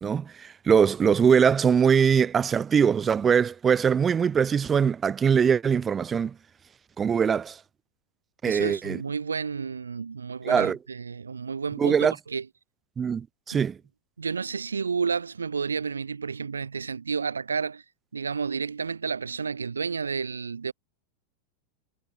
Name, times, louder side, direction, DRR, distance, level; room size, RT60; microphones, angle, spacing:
voice 1, 0.0-6.3 7.0-7.6 8.4-9.0 10.4-10.8 11.8-12.1 13.0-13.8, right 7 dB, 20° right, 1.2 m, -22 dB
voice 2, 8.5-12.4 13.5-13.6 14.2-17.8 18.1-20.7, right 5 dB, 75° right, 3.0 m, -31 dB
figure-of-eight pair, 90°, 0 cm